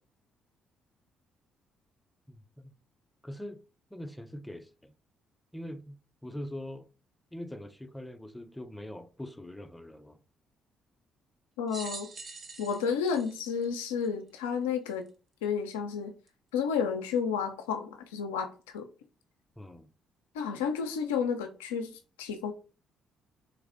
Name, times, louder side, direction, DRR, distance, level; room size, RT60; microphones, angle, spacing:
voice 1, 2.3-2.7 3.2-3.6 3.9-4.9 5.5-6.9 7.3-10.2 19.6-19.9, left 1 dB, 10° left, 0.4 m, -43 dB
voice 2, 11.6-12.1 12.6-15.1 15.4-16.1 16.5-18.9 20.3-22.5, left 6 dB, 85° left, 0.3 m, -31 dB
sound 1, 11.7-14.4 15.1-15.2 16.3-16.4, right 3 dB, 45° right, 0.6 m, -45 dB
3.2 x 3.2 x 2.5 m
hypercardioid pair, 50°, 0 cm